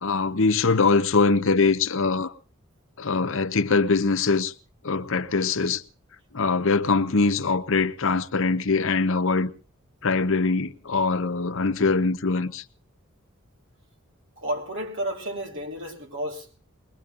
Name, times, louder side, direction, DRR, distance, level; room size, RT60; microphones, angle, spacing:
voice 1, 0.0-2.3 3.0-4.5 4.8-5.8 6.3-9.5 10.0-12.6, left 4 dB, 65° left, 0.9 m, -22 dB
voice 2, 14.4-16.6, right 1 dB, 65° right, 3.7 m, -32 dB
22.0 x 21.0 x 2.5 m
head